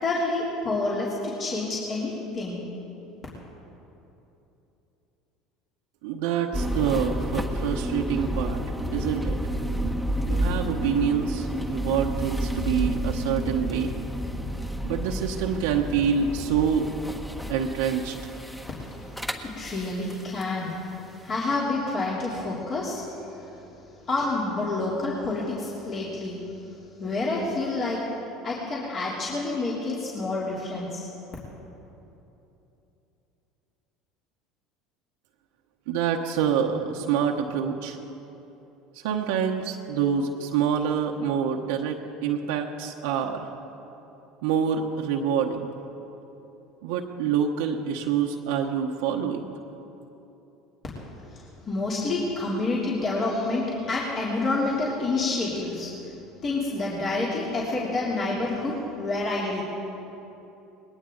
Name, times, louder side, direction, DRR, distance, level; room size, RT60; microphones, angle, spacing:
voice 1, 0.0-2.7 18.9-19.0 19.4-20.8 21.2-23.7 24.1-26.4 27.0-28.0 28.4-31.1 51.3-55.9 56.4-59.6, left 2 dB, 40° left, -6 dB, 3.3 m, -28 dB
voice 2, 6.0-8.6 8.9-9.4 9.8-10.0 10.3-13.9 14.8-16.9 17.5-18.3 35.9-38.0 38.9-43.5 44.4-45.7 46.8-49.5, right 7 dB, 75° right, 1 dB, 1.0 m, -26 dB
sound 1, 6.5-20.5, equal, 5° left, 1.4 m, -30 dB
20.0 x 18.0 x 4.0 m, 3.0 s
hypercardioid pair, 80°, 0 cm